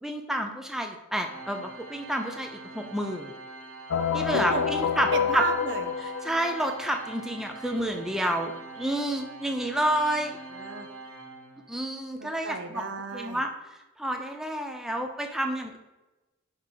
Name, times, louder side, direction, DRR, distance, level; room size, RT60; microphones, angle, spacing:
voice 1, 0.0-3.3 4.1-5.4 6.2-10.4 11.7-12.8 13.1-13.5 14.0-15.8, equal, ahead, 3 dB, 0.5 m, -29 dB
Organ, 1.2-11.9, right 3 dB, 90° right, 1.1 m, -44 dB
sound 1, 3.9-6.8, left 7 dB, 85° left, 0.4 m, -28 dB
voice 2, 4.2-4.6 5.1-5.9 10.5-10.9 12.2-13.4, right 5 dB, 55° right, 7 dB, 0.6 m, -33 dB
5.8 x 4.7 x 4.5 m, 1.1 s
head